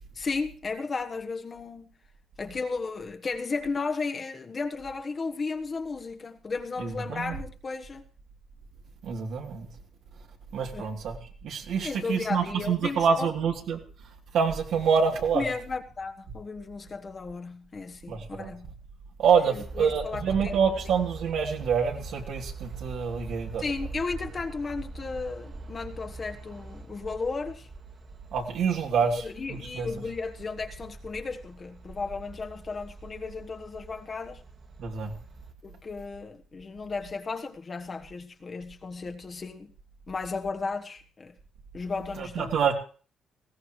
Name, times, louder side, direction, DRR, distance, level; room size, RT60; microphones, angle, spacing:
voice 1, 0.1-1.9 2.4-8.0 10.7-11.0 11.8-13.3 15.3-18.7 19.5-20.6 23.6-27.7 29.1-34.4 35.6-39.7 40.1-41.3 41.7-42.5, left 4 dB, 35° left, 1.3 m, -34 dB
voice 2, 6.8-7.4 9.0-9.7 10.5-11.2 11.4-13.8 14.3-15.4 18.1-18.5 19.2-23.6 28.3-29.9 34.8-35.1 42.2-42.7, right 6 dB, 75° right, 3.2 m, -26 dB
sound 1, 19.6-35.5, right 3 dB, 50° right, 2.2 m, -44 dB
19.5 x 16.5 x 3.2 m
cardioid pair, 90°, 0 cm